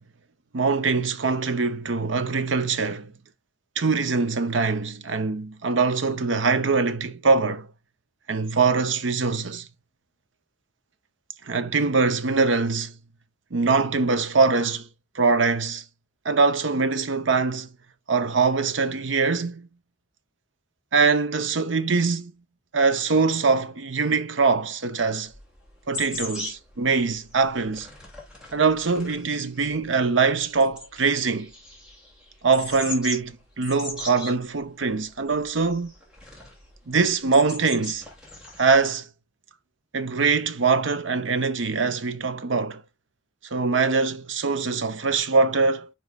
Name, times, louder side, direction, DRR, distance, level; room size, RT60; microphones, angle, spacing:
voice 1, 0.5-3.1 3.8-7.7 8.3-9.7 11.4-12.9 13.5-14.9 15.1-15.8 16.2-17.7 18.1-19.7 20.9-22.3 22.7-25.3 25.9-27.9 28.5-31.5 32.4-35.9 36.9-38.0 38.6-39.1 39.9-42.8 43.5-45.9, right 4 dB, 70° right, 0.7 m, -23 dB
sound 1, 25.3-38.9, left 2 dB, 5° right, 2.6 m, -40 dB
9.6 x 4.6 x 2.3 m
head